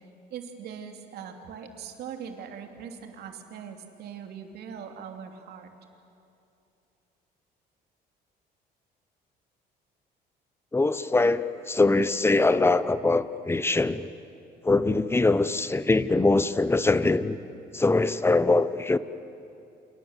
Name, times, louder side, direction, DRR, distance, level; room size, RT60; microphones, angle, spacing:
voice 1, 0.3-5.7, right 7 dB, 70° right, 4 dB, 3.1 m, -41 dB
voice 2, 10.7-14.1 14.6-17.4 17.7-19.0, left 3 dB, 15° left, 14 dB, 0.9 m, -23 dB
29.0 x 27.5 x 7.5 m, 2.7 s
cardioid pair, 110°, 17 cm